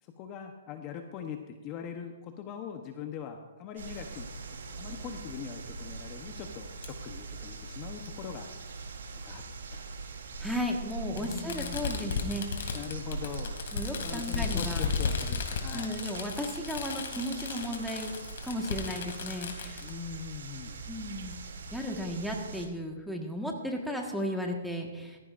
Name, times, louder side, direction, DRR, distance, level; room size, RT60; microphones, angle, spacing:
voice 1, 0.0-4.3 4.7-8.6 9.2-9.4 9.7-9.9 11.1-11.8 12.7-13.6 14.0-15.9 19.8-20.8, left 8 dB, 30° left, 5 dB, 0.9 m, -41 dB
sound 1, 3.8-22.7, right 3 dB, 80° right, 2.8 m, -42 dB
Fireworks, 6.8-6.9 8.1-8.2 9.4-9.5 11.2-19.9, left 5 dB, 65° left, 2.6 m, -34 dB
voice 2, 10.4-12.8 13.7-14.9 15.7-18.2 18.4-19.8 20.9-21.3 21.7-25.2, equal, ahead, 0 dB, 1.6 m, -35 dB
17.0 x 14.5 x 2.6 m, 1.2 s
hypercardioid pair, 155°, 0 cm